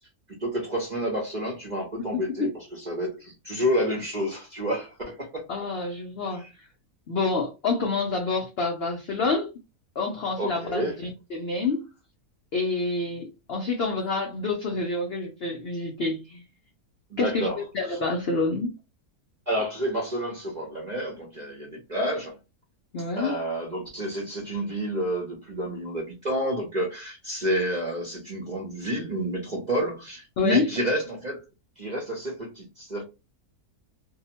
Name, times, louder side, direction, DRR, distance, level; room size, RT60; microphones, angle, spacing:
voice 1, 0.3-5.4 6.3-6.5 10.4-11.0 17.1-17.6 17.9-18.0 19.5-22.4 23.1-31.4 31.8-33.0, equal, 45° right, 0.5 m, -29 dB
voice 2, 2.1-2.5 5.5-6.4 7.1-9.5 10.0-11.9 12.5-16.4 17.2-18.7 22.9-23.4 30.4-30.7, left 3 dB, 80° left, 0.5 m, -28 dB
2.7 x 2.0 x 2.8 m
omnidirectional pair, 1.7 m